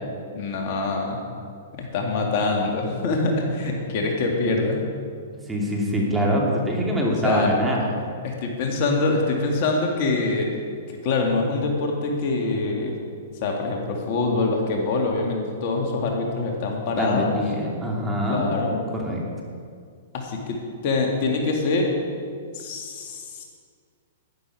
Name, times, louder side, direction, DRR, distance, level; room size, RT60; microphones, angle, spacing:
voice 1, 0.3-1.2 1.7-4.8 7.2-7.5 8.2-10.5 10.9-12.9 13.4-17.3 18.3-18.8 20.1-21.9 22.5-23.4, left 3 dB, 50° left, 0 dB, 2.1 m, -24 dB
voice 2, 5.5-7.8 17.0-18.5 18.9-19.2, equal, 10° right, -3 dB, 2.5 m, -24 dB
11.5 x 10.5 x 4.7 m, 2.1 s
hypercardioid pair, 120°, 0 cm